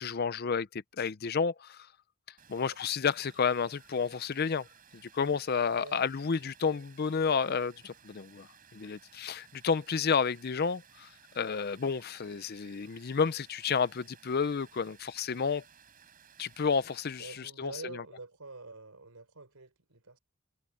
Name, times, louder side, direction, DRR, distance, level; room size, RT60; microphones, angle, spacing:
voice 1, 0.0-1.9 2.3-4.7 5.1-15.6 16.4-18.0, left 6 dB, 45° left, 0.5 m, -31 dB
Water, 2.4-17.4, right 7 dB, 40° right, 5.0 m, -59 dB
voice 2, 17.2-20.2, right 3 dB, 90° right, 3.9 m, -47 dB
head